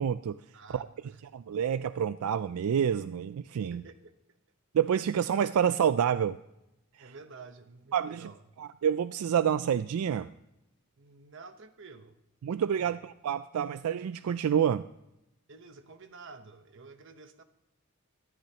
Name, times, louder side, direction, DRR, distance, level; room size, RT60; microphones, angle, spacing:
voice 1, 0.0-0.4 0.7-0.9 1.3-3.8 4.7-6.4 7.0-7.1 7.9-8.3 8.6-10.3 12.4-14.8, right 8 dB, 80° right, 14 dB, 0.3 m, -28 dB
voice 2, 0.5-1.2 3.7-4.4 7.0-8.4 11.0-12.1 12.6-13.0 15.5-17.4, right 4 dB, 55° right, 9 dB, 0.9 m, -50 dB
18.5 x 13.5 x 2.9 m, 0.90 s
head